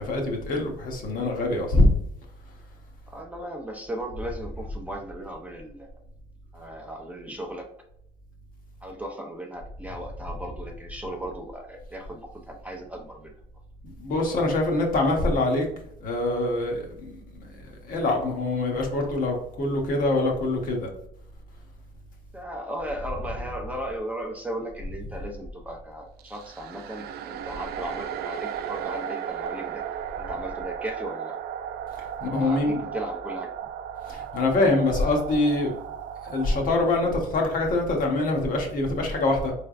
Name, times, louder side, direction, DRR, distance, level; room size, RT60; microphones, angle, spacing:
voice 1, 0.0-1.9 13.8-15.6 16.0-20.9 32.2-32.8 34.1-35.7 36.2-39.5, left 2 dB, 55° left, 1 dB, 1.1 m, -24 dB
voice 2, 3.1-5.9 6.5-7.7 8.8-13.3 22.3-29.9 30.2-31.4 32.2-33.5, right 1 dB, 10° right, 1 dB, 0.6 m, -36 dB
sound 1, 26.2-36.7, right 9 dB, 70° right, 0.4 m, -35 dB
3.7 x 3.3 x 2.4 m, 0.73 s
cardioid pair, 110°, 17 cm